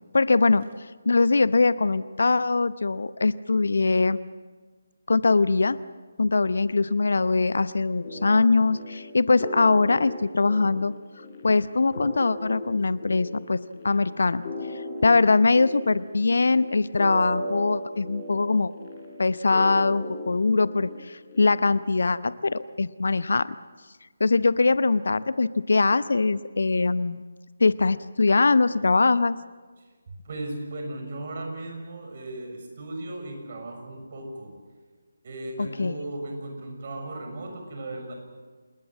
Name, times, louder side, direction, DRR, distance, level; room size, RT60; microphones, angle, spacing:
voice 1, 0.1-0.6 1.0-4.2 5.1-5.8 6.2-10.9 11.4-14.4 14.7-18.7 19.2-23.5 24.2-27.2 27.6-29.4 35.6-36.0, left 3 dB, 60° left, 16 dB, 0.8 m, -22 dB
sound 1, 8.0-21.8, left 1 dB, 30° left, 5.0 m, -37 dB
voice 2, 30.1-34.5 35.2-38.1, right 2 dB, 45° right, 3 dB, 6.7 m, -36 dB
27.5 x 20.0 x 7.5 m, 1.4 s
figure-of-eight pair, 150°, 0 cm